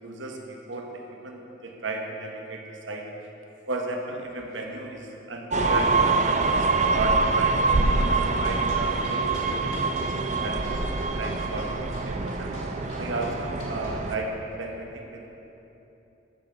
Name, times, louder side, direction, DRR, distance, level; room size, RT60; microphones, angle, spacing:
voice 1, 0.0-2.6 2.9-3.0 3.7-6.7 6.9-7.6 8.0-12.5 13.0-14.3 14.6-15.3, right 2 dB, 75° right, 1 dB, 1.1 m, -34 dB
sound 1, 5.5-14.2, right 3 dB, 35° right, 0.4 m, -25 dB
sound 2, 8.4-14.0, left 1 dB, 80° left, 1.5 m, -45 dB
12.0 x 7.6 x 3.4 m, 3.0 s
head